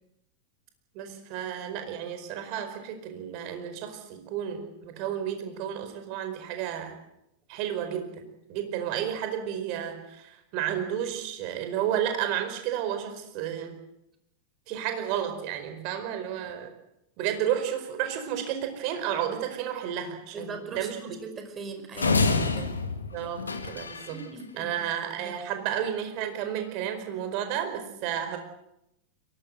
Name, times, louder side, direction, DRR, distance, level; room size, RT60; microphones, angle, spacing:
voice 1, 0.9-7.0 7.5-8.1 8.5-13.8 14.7-16.7 17.2-21.2 23.1-24.2 24.6-28.4, right 10 dB, 45° right, 7 dB, 4.9 m, -32 dB
voice 2, 20.3-22.8 24.1-24.9 25.2-25.4, right 3 dB, 25° right, 6 dB, 5.0 m, -40 dB
sound 1, 22.0-24.2, left 4 dB, 75° left, 2.1 m, -27 dB
23.0 x 19.5 x 8.0 m, 0.83 s
figure-of-eight pair, 90°, 0 cm